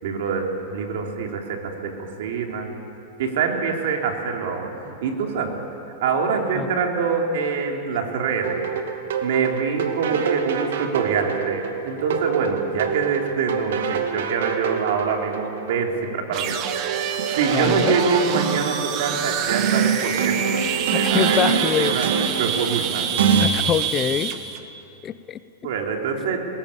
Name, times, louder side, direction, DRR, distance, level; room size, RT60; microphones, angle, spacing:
voice 1, 0.0-2.7 3.2-5.6 6.0-8.6 9.2-16.7 17.3-20.6 20.9-21.5 21.8-22.1 22.4-23.1 25.6-26.5, right 5 dB, 65° right, 2 dB, 3.5 m, -25 dB
sound 1, 8.4-23.4, right 6 dB, 85° right, 2.2 m, -26 dB
sound 2, 16.3-24.6, right 8 dB, 35° right, 1.6 m, -27 dB
voice 2, 17.5-18.0 20.9-22.0 23.4-24.4 25.0-25.7, left 9 dB, 25° left, 14 dB, 0.6 m, -25 dB
23.0 x 20.5 x 8.7 m, 2.8 s
supercardioid pair, 160°, 0 cm